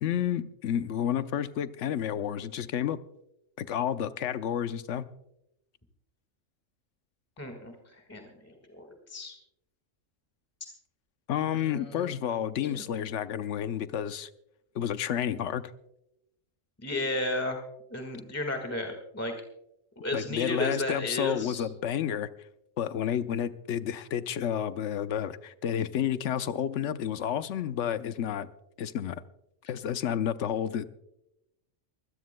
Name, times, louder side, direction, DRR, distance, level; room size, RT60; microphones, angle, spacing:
voice 1, 0.0-3.0 3.6-5.1 11.3-14.3 14.7-15.6 20.1-22.3 22.8-28.5 28.8-29.2 29.7-30.9, left 9 dB, 70° left, 12 dB, 1.0 m, -30 dB
voice 2, 7.4-9.3 11.6-12.1 12.7-12.8 16.8-17.6 17.9-19.3 20.0-21.6, left 1 dB, 10° left, 3 dB, 1.6 m, -33 dB
24.0 x 17.0 x 2.2 m, 0.84 s
omnidirectional pair, 1.3 m